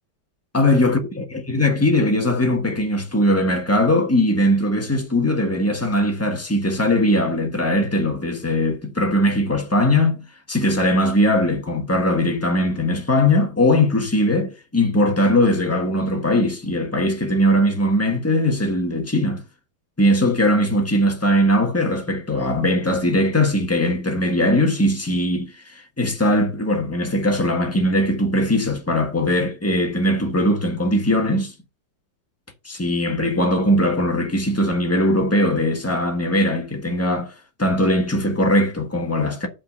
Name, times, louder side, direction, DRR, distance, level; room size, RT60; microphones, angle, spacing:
voice 1, 0.5-10.2 10.5-19.4 20.0-31.5 32.6-37.3 37.6-39.5, left 1 dB, 10° left, 1.1 m, -20 dB
5.8 x 5.4 x 6.7 m
omnidirectional pair, 2.1 m